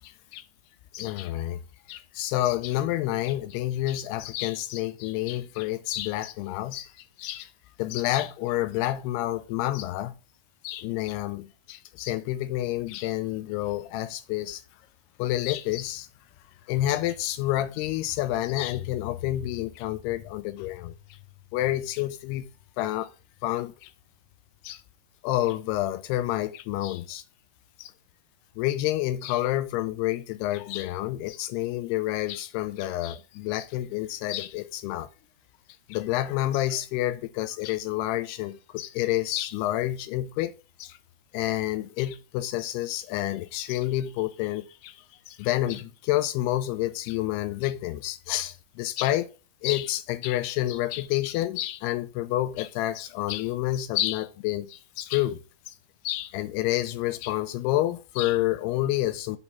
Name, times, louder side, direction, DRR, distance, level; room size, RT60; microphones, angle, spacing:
voice 1, 0.0-0.5 0.9-1.6 1.9-6.9 7.2-7.5 7.8-10.2 10.6-14.6 15.2-16.1 16.7-20.9 21.5-22.5 22.8-23.1 23.4-23.9 24.6-24.8 25.2-27.2 27.8-27.9 28.6-35.1 35.9-40.5 40.8-41.0 41.3-49.3 49.6-55.4 55.7-55.8 56.0-59.4, left 14 dB, 90° left, 2.7 m, -29 dB
7.1 x 4.3 x 5.9 m
omnidirectional pair, 4.5 m